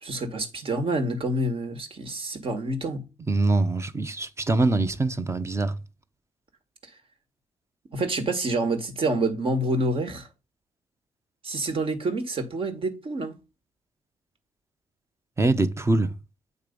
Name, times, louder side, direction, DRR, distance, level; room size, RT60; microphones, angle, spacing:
voice 1, 0.0-3.0 7.9-10.3 11.4-13.3, right 2 dB, 50° right, 1.7 m, -27 dB
voice 2, 3.3-5.8 15.4-16.1, right 2 dB, 25° right, 0.8 m, -23 dB
8.4 x 3.3 x 5.2 m
supercardioid pair, 60°, 12 cm